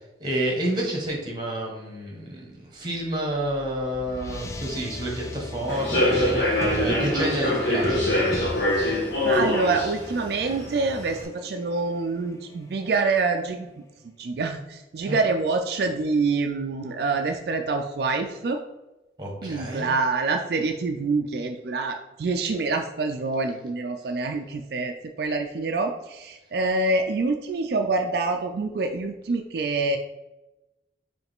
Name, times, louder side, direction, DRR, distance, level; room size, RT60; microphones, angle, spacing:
voice 1, 0.2-8.4 15.1-15.2 19.2-19.9, right 1 dB, 25° right, -1 dB, 1.2 m, -29 dB
sound 1, 3.3-13.8, left 1 dB, 15° left, 0.3 m, -39 dB
Human voice / Subway metro underground, 5.7-11.2, left 1 dB, 75° left, 1.3 m, -24 dB
voice 2, 9.2-13.7 14.2-18.6 19.4-30.0, right 3 dB, 60° right, 4 dB, 0.3 m, -26 dB
4.7 x 3.2 x 3.5 m, 1.0 s
head